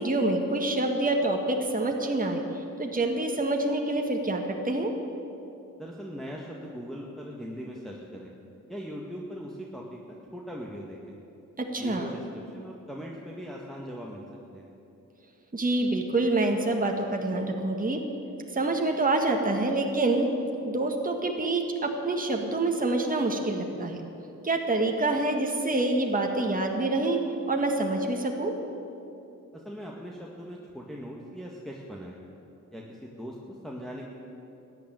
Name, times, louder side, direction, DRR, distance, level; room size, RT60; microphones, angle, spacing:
voice 1, 0.0-4.9 11.6-12.1 15.5-18.0 18.5-20.3 20.6-24.0 24.4-27.2 27.5-28.5, right 2 dB, 25° right, 2 dB, 1.7 m, -26 dB
voice 2, 5.8-8.3 8.7-11.2 11.7-12.2 12.5-14.2 14.5-14.7 29.5-32.2 32.7-34.1, equal, ahead, -2 dB, 1.8 m, -40 dB
13.5 x 9.4 x 9.2 m, 2.9 s
cardioid pair, 60°, 34 cm